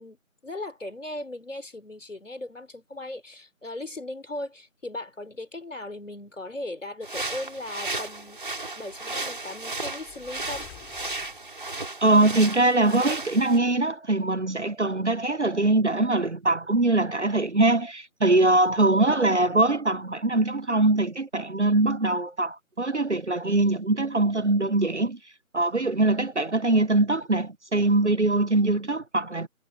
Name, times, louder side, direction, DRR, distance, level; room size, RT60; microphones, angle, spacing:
voice 1, 0.0-10.7, left 1 dB, 60° left, 3.5 m, -38 dB
sound 1, 7.0-13.6, right 2 dB, 35° right, 4.8 m, -35 dB
sound 2, 9.9-11.7, left 29 dB, 5° left, 4.8 m, -50 dB
voice 2, 12.0-25.2 25.5-29.5, right 2 dB, 55° right, 1.0 m, -22 dB
figure-of-eight pair, 175°, 43 cm